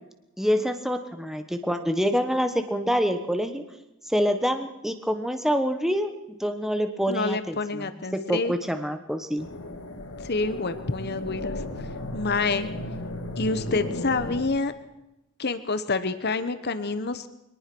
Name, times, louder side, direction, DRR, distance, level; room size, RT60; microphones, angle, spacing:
voice 1, 0.4-3.6 4.1-6.1 6.4-7.9 8.1-9.5, equal, ahead, 7 dB, 1.3 m, -26 dB
voice 2, 7.1-8.5 10.2-11.6 12.1-12.7 13.4-14.7 15.4-17.3, left 3 dB, 50° left, 11 dB, 1.1 m, -27 dB
sound 1, 9.4-14.4, left 1 dB, 85° left, 3.4 m, -35 dB
23.5 x 19.0 x 6.2 m, 0.93 s
head